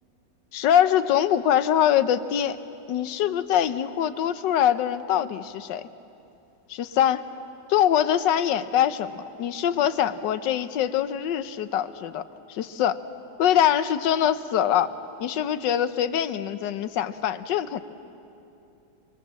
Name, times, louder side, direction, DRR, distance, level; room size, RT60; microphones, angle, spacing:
voice 1, 0.5-2.6 2.9-5.8 6.7-7.3 7.7-12.2 12.5-13.0 13.4-14.9 15.2-17.8, left 10 dB, 70° left, 12 dB, 1.4 m, -23 dB
27.0 x 22.5 x 7.5 m, 2.7 s
omnidirectional pair, 2.1 m